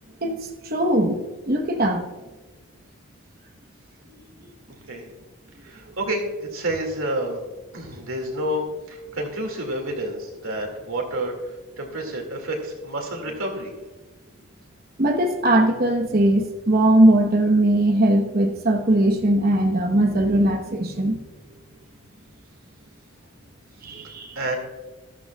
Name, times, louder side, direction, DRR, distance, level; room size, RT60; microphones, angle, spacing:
voice 1, 0.6-2.1 4.1-4.2 15.0-21.2 23.8-24.4, right 1 dB, 45° right, 3 dB, 1.1 m, -20 dB
voice 2, 5.6-7.4 7.7-13.7 24.4-24.6, right 1 dB, 80° right, 1 dB, 2.2 m, -29 dB
13.5 x 12.0 x 2.3 m, 1.2 s
head